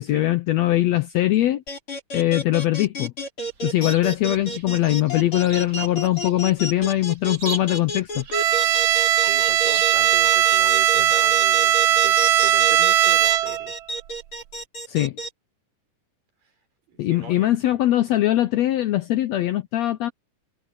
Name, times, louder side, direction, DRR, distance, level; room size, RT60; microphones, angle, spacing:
voice 1, 0.0-1.6 2.1-3.1 3.6-8.2 14.9-15.1 17.0-20.1, left 14 dB, 80° left, 1.6 m, -21 dB
sound 1, 1.7-15.3, equal, 40° left, 5.7 m, -31 dB
Chirp tweet, 3.5-11.1, right 4 dB, 40° right, 1.8 m, -42 dB
Bowed string instrument, 8.3-13.7, right 12 dB, 75° right, 1.9 m, -19 dB
voice 2, 9.2-13.7 16.9-17.5, right 6 dB, 90° right, 7.2 m, -39 dB
omnidirectional pair, 3.8 m